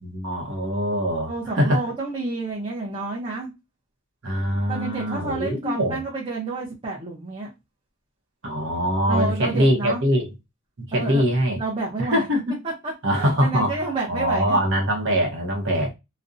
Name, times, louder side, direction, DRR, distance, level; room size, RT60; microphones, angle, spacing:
voice 1, 0.0-1.8 4.2-6.0 8.4-10.3 10.8-11.6 12.0-12.6 13.0-13.8 14.1-15.9, equal, 65° right, 0.8 m, -23 dB
voice 2, 1.3-3.5 4.7-7.5 9.1-10.0 10.9-11.3 11.6-12.2 12.6-14.6, right 3 dB, 30° right, 0.6 m, -29 dB
2.5 x 2.1 x 2.5 m
head